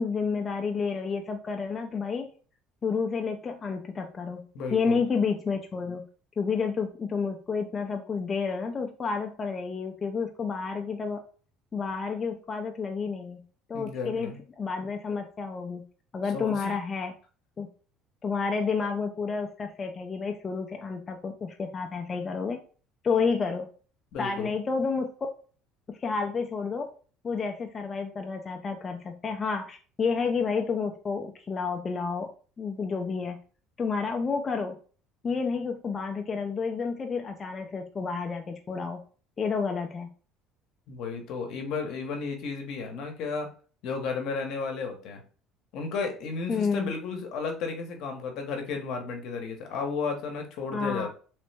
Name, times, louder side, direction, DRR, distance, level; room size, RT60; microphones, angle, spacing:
voice 1, 0.0-2.3 2.8-6.0 6.4-11.2 11.7-13.4 13.7-15.8 16.1-17.1 17.6-17.7 18.2-22.6 23.0-23.7 24.2-25.1 25.9-26.9 27.2-32.3 32.6-33.4 33.8-34.8 35.2-39.0 39.4-40.1 46.5-46.9 50.7-51.1, left 5 dB, 30° left, 3 dB, 0.3 m, -30 dB
voice 2, 4.5-5.0 13.7-14.4 16.3-16.7 24.1-24.5 40.9-43.5 43.8-45.2 45.7-51.1, left 4 dB, 65° left, 4 dB, 0.8 m, -33 dB
3.1 x 2.1 x 3.2 m, 0.40 s
supercardioid pair, 100°, 0 cm